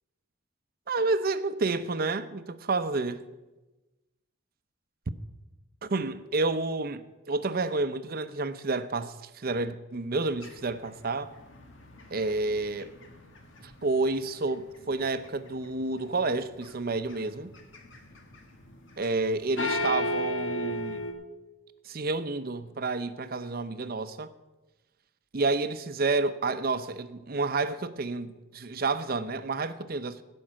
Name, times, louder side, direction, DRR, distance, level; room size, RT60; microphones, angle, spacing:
voice 1, 0.9-3.2 5.8-11.3 12.1-12.9 13.6-17.5 19.0-21.0 21.9-24.3 25.3-30.2, right 3 dB, 50° right, 0.7 m, -30 dB
sound 1, 10.4-14.5 14.8-15.7 16.1-16.7 17.0-19.3 19.6-21.1, left 1 dB, 80° left, 1.7 m, -34 dB
16.5 x 5.4 x 7.5 m
head